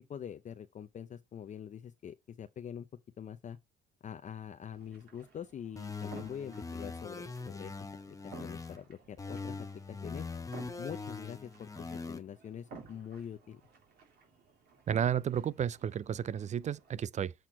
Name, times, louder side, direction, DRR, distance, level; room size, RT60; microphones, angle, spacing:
voice 1, 0.1-2.9 3.2-3.6 4.0-7.7 8.1-10.3 10.8-13.6, left 8 dB, 45° left, 0.6 m, -44 dB
sound 1, 4.7-16.9, right 4 dB, 65° right, 3.3 m, -55 dB
sound 2, 5.8-8.8 9.2-12.2, left 4 dB, 20° left, 0.9 m, -42 dB
voice 2, 14.9-17.3, right 9 dB, 40° right, 0.5 m, -32 dB
7.7 x 4.3 x 4.4 m
cardioid pair, 85°, 18 cm